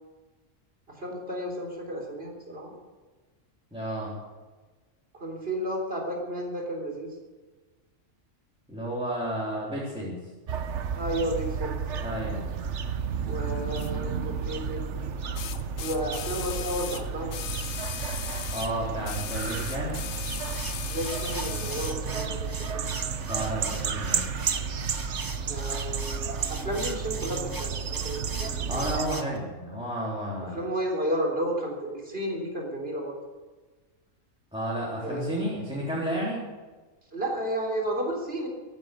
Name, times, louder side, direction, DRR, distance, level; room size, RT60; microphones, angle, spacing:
voice 1, 0.9-2.7 5.1-7.1 10.9-11.8 13.3-14.9 15.8-17.3 20.9-22.8 25.5-28.8 30.5-33.2 35.0-35.3 37.1-38.5, right 1 dB, 50° right, 0 dB, 4.0 m, -32 dB
voice 2, 3.7-4.2 8.7-10.2 12.0-12.4 18.5-20.0 23.3-24.3 28.7-30.6 34.5-36.4, right 1 dB, 5° right, -7 dB, 3.6 m, -32 dB
sound 1, 10.5-29.1, right 6 dB, 65° right, 1.2 m, -32 dB
sound 2, 13.8-13.9 15.4-18.7 19.0-22.0 22.9-23.0, left 10 dB, 90° left, 1.1 m, -37 dB
sound 3, 20.5-29.4, right 3 dB, 20° right, 0.6 m, -41 dB
15.5 x 11.5 x 6.9 m, 1.3 s
omnidirectional pair, 1.3 m